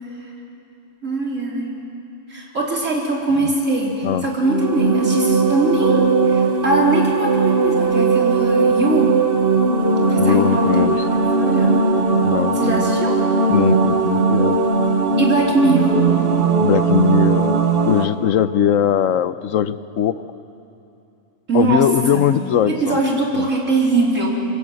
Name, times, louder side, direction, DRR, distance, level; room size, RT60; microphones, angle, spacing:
voice 1, 1.0-1.7 2.3-9.2 10.1-11.8 12.6-13.2 15.2-16.0 21.5-21.8 22.1-22.2 22.7-24.3, right 2 dB, 75° right, -2 dB, 4.2 m, -21 dB
sound 1, 4.4-18.1, right 4 dB, 50° right, 1.6 m, -18 dB
voice 2, 10.2-11.0 12.2-12.9 13.5-14.6 16.6-20.2 21.5-23.0 23.3-23.5, left 9 dB, 85° left, 13 dB, 1.1 m, -20 dB
26.0 x 23.0 x 7.8 m, 2.7 s
omnidirectional pair, 1.3 m